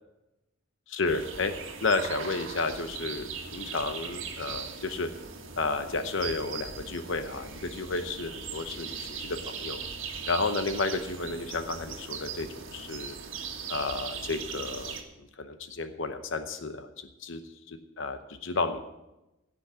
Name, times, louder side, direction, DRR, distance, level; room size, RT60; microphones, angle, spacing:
voice 1, 0.9-1.5 1.8-5.1 5.6-9.8 10.3-13.1 13.7-17.4 17.7-18.8, left 3 dB, 70° left, 8 dB, 0.9 m, -32 dB
sound 1, 1.1-15.0, right 5 dB, 80° right, 1.9 m, -39 dB
16.0 x 6.2 x 7.5 m, 0.96 s
head